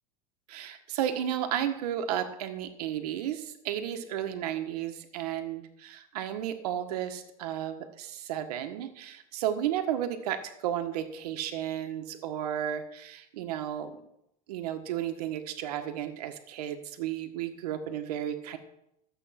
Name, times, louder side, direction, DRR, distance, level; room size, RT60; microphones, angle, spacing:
voice 1, 0.5-14.0 14.5-18.6, right 10 dB, 80° right, 7 dB, 1.6 m, -33 dB
13.0 x 8.0 x 5.9 m, 0.82 s
supercardioid pair, 170°, 20 cm